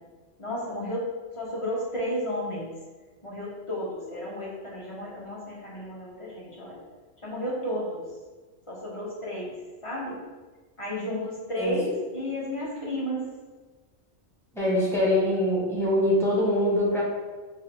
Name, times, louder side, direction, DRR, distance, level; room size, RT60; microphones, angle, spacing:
voice 1, 0.4-2.7 3.2-6.8 7.2-8.0 8.7-9.5 9.8-10.2 10.8-13.2, left 1 dB, 30° left, -5 dB, 0.9 m, -32 dB
voice 2, 14.5-17.0, left 1 dB, 5° left, -6 dB, 0.8 m, -23 dB
4.0 x 2.6 x 3.1 m, 1.3 s
omnidirectional pair, 1.2 m